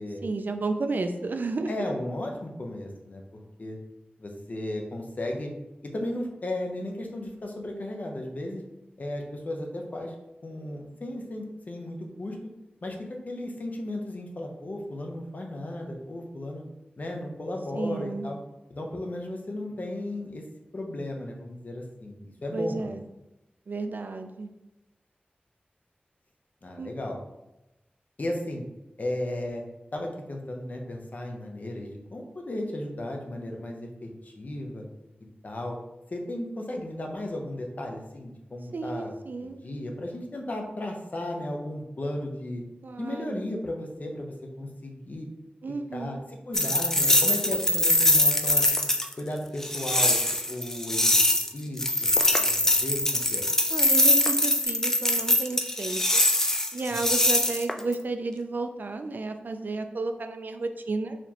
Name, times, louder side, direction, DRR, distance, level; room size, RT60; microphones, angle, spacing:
voice 1, 0.2-1.7 17.7-18.3 22.5-23.0 23.7-24.5 26.8-27.1 38.7-39.6 42.8-43.4 45.6-46.2 53.7-56.2 56.7-61.2, right 3 dB, 60° right, 7 dB, 0.3 m, -32 dB
voice 2, 1.7-3.2 3.6-3.8 4.2-5.5 5.8-8.6 9.0-10.1 10.4-12.4 12.8-16.6 17.0-18.4 18.7-20.4 20.7-23.0 26.6-27.2 28.2-28.6 29.0-29.6 29.9-34.8 35.4-35.8 36.1-39.1 39.4-42.6 43.0-45.3 45.9-48.6 49.2-50.2 50.5-51.1 51.5-52.1 52.4-53.4, left 1 dB, 50° left, 2 dB, 0.7 m, -35 dB
sound 1, 46.5-49.1 49.6-51.5 51.8-57.9, left 1 dB, 15° left, 0.3 m, -23 dB
4.2 x 3.0 x 2.8 m, 0.96 s
wide cardioid pair, 90°, 4 cm